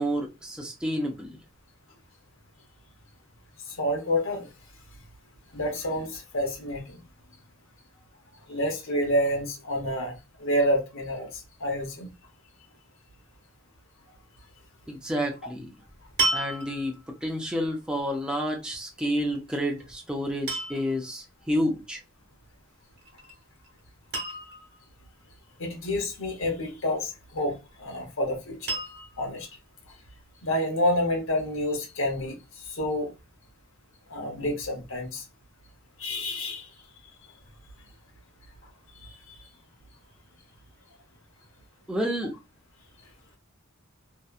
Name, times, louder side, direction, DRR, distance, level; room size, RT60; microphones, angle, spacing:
voice 1, 0.0-1.4 14.9-15.7 16.3-22.0 41.9-42.3, equal, 5° right, 0.4 m, -30 dB
voice 2, 3.7-4.5 5.5-7.0 8.5-12.1 25.6-28.8 29.2-29.5 30.4-32.3 32.7-33.1 34.1-35.2 36.0-36.7 39.0-39.1, left 1 dB, 65° left, 0.8 m, -28 dB
sound 1, 15.2-15.5 16.2-17.1 19.5-19.8 20.5-21.0 23.0-23.3 23.6-23.7 24.1-24.8 27.1-27.7 28.7-29.3 30.0-30.1, right 3 dB, 50° right, 0.9 m, -31 dB
2.7 x 2.2 x 2.3 m
head